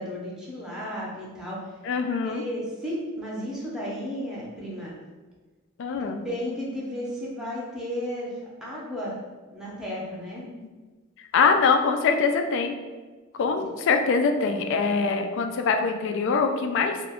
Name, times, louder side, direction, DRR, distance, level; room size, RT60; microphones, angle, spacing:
voice 1, 0.0-1.7 2.2-4.9 5.9-8.3 8.6-9.2 9.5-10.4 13.5-13.6, equal, 5° right, -6 dB, 0.6 m, -34 dB
voice 2, 1.8-2.4 5.8-6.2 11.3-12.7 13.3-17.1, left 5 dB, 65° left, 6 dB, 0.3 m, -23 dB
2.4 x 2.2 x 3.4 m, 1.3 s
head